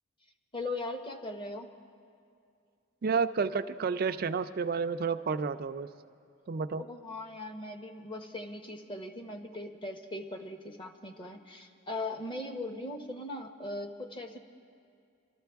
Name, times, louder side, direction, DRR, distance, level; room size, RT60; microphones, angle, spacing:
voice 1, 0.5-1.7 6.8-14.4, left 2 dB, 25° left, 5 dB, 0.9 m, -39 dB
voice 2, 3.0-5.9 6.5-6.8, right 5 dB, 45° right, 8 dB, 0.4 m, -30 dB
24.0 x 13.5 x 3.5 m, 2.3 s
head